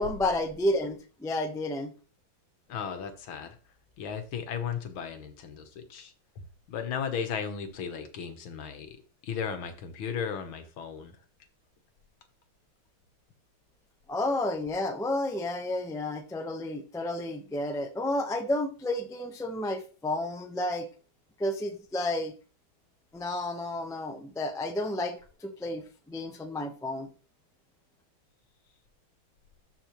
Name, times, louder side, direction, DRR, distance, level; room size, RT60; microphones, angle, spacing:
voice 1, 0.0-1.9 14.1-20.9 21.4-22.3 23.1-27.1, left 1 dB, 5° left, 5 dB, 0.3 m, -31 dB
voice 2, 2.7-3.6 4.0-6.1 6.7-9.0 9.2-11.2, left 7 dB, 75° left, 7 dB, 2.0 m, -35 dB
12.5 x 5.6 x 3.1 m, 0.37 s
omnidirectional pair, 2.2 m